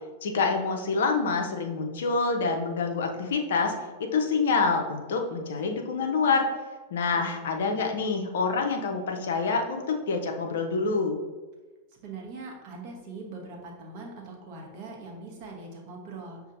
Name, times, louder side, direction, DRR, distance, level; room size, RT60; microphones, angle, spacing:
voice 1, 0.2-3.7 4.0-6.5 6.9-11.2, left 4 dB, 60° left, 4 dB, 0.5 m, -26 dB
voice 2, 12.0-16.4, right 3 dB, 45° right, 0 dB, 0.9 m, -42 dB
6.2 x 2.5 x 2.6 m, 1.3 s
figure-of-eight pair, 90°, 0 cm